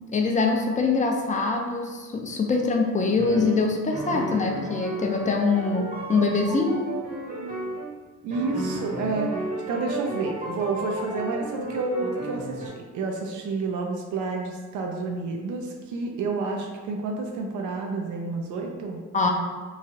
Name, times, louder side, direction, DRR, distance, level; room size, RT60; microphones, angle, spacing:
voice 1, 0.1-6.9 19.1-19.3, left 4 dB, 25° left, 2 dB, 0.4 m, -24 dB
sound 1, 3.2-7.9 8.3-12.7, right 2 dB, 25° right, 0.8 m, -33 dB
voice 2, 8.2-19.0, right 3 dB, 80° right, 2 dB, 0.5 m, -30 dB
3.1 x 2.3 x 2.7 m, 1.4 s
cardioid pair, 90°, 30 cm